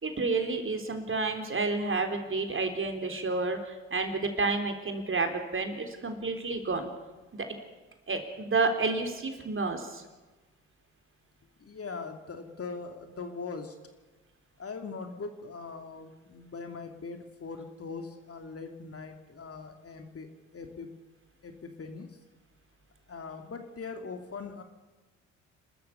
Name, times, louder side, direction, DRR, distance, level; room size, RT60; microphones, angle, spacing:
voice 1, 0.0-6.9 7.3-7.5 8.1-10.0, right 3 dB, 35° right, 5 dB, 3.8 m, -30 dB
voice 2, 11.6-13.7 14.6-20.9 21.4-22.1 23.1-24.6, left 4 dB, 40° left, 5 dB, 2.8 m, -41 dB
29.0 x 13.5 x 7.1 m, 1.2 s
hypercardioid pair, 55°, 37 cm